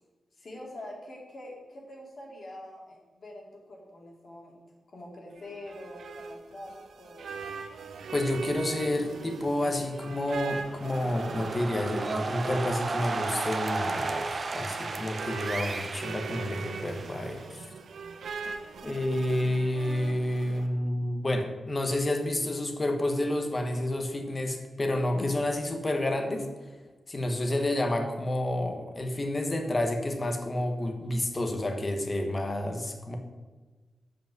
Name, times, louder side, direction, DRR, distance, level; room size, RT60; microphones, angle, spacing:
voice 1, 0.4-4.6 4.9-6.7 7.0-7.6, left 1 dB, 45° left, -1 dB, 2.7 m, -45 dB
sound 1, 5.4-20.7, right 5 dB, 90° right, 0.8 m, -41 dB
voice 2, 8.1-17.7 18.8-26.5 27.1-33.2, left 1 dB, 25° left, 4 dB, 1.3 m, -29 dB
sound 2, 10.6-17.5, right 3 dB, 40° right, 0.7 m, -34 dB
7.8 x 5.1 x 7.5 m, 1.3 s
wide cardioid pair, 130°, 0 cm